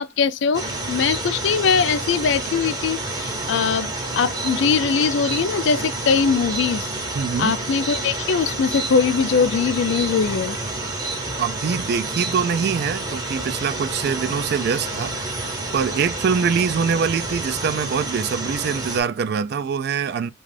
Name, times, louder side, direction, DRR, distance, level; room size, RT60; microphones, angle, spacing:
voice 1, 0.0-6.9 7.4-10.6, left 6 dB, 65° left, 0.4 m, -21 dB
Night Ambience, 0.5-19.0, right 2 dB, 20° right, 0.7 m, -29 dB
voice 2, 7.1-7.5 11.4-15.3 15.7-20.3, right 6 dB, 55° right, 0.3 m, -24 dB
2.4 x 2.3 x 3.2 m
head